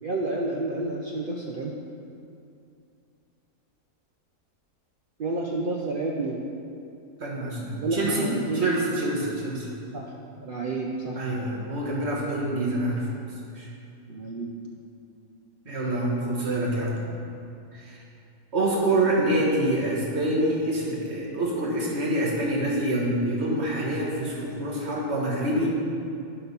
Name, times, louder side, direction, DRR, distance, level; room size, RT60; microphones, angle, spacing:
voice 1, 0.0-1.7 5.2-6.4 7.8-8.7 9.9-11.2 14.1-14.5, right 2 dB, 60° right, -2 dB, 0.5 m, -30 dB
voice 2, 7.2-9.7 11.2-13.1 13.6-13.7 15.7-17.0 17.7-18.0 18.5-25.7, right 1 dB, 45° right, -3 dB, 1.6 m, -26 dB
11.0 x 4.4 x 5.4 m, 2.5 s
omnidirectional pair, 1.7 m